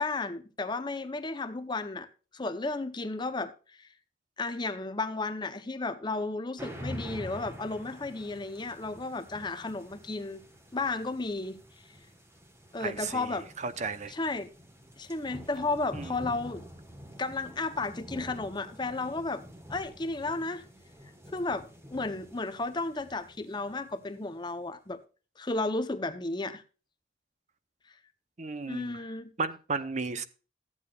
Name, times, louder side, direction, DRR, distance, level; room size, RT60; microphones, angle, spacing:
voice 1, 0.0-2.1 2.3-3.5 3.8-3.9 4.4-10.5 10.7-11.6 12.7-13.5 14.1-14.5 15.0-16.7 17.2-19.4 19.7-20.6 21.3-25.0 25.4-26.6 28.7-29.3, left 3 dB, 25° left, 0.7 m, -33 dB
sound 1, 6.6-24.4, equal, 15° right, 1.3 m, -47 dB
voice 2, 12.8-14.1 15.9-16.1 28.4-29.0 29.4-30.2, right 4 dB, 40° right, 0.7 m, -34 dB
14.5 x 8.5 x 2.3 m
head